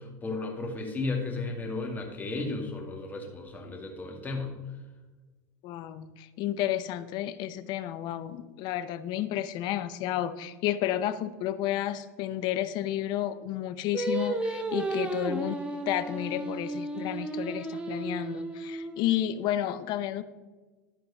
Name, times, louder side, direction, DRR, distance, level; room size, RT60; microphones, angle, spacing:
voice 1, 0.0-4.5, left 3 dB, 20° left, 1 dB, 2.0 m, -34 dB
voice 2, 5.6-15.6 15.9-20.2, left 12 dB, 50° left, 13 dB, 0.7 m, -31 dB
Singing, 13.9-19.2, right 2 dB, 10° right, 1.1 m, -33 dB
12.5 x 4.6 x 5.4 m, 1.3 s
supercardioid pair, 125°, 9 cm